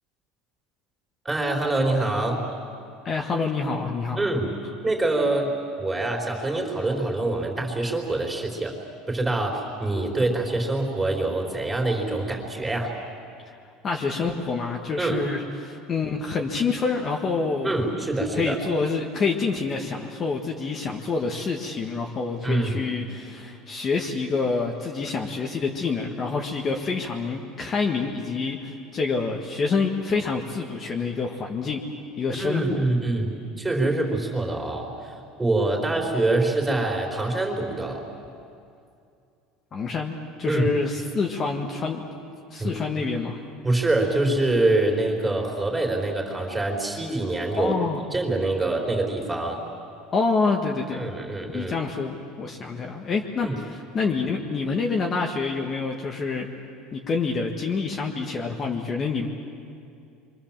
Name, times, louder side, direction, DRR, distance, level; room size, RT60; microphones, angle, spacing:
voice 1, 1.2-2.5 4.2-4.5 4.8-5.5 5.8-8.8 9.1-12.9 15.0-15.2 17.6-18.6 22.4-22.8 32.4-35.1 35.4-38.1 40.5-40.7 42.6-42.7 43.6-47.8 48.1-49.6 50.9-51.8 53.4-53.6, right 2 dB, 10° right, 0 dB, 4.0 m, -25 dB
voice 2, 3.0-4.2 13.8-17.7 18.3-31.8 32.2-32.8 39.7-42.0 42.5-43.4 47.6-48.0 50.1-51.1 51.5-56.5 56.9-59.3, left 4 dB, 25° left, 1 dB, 1.7 m, -27 dB
28.5 x 24.5 x 7.5 m, 2.5 s
cardioid pair, 150°, 0 cm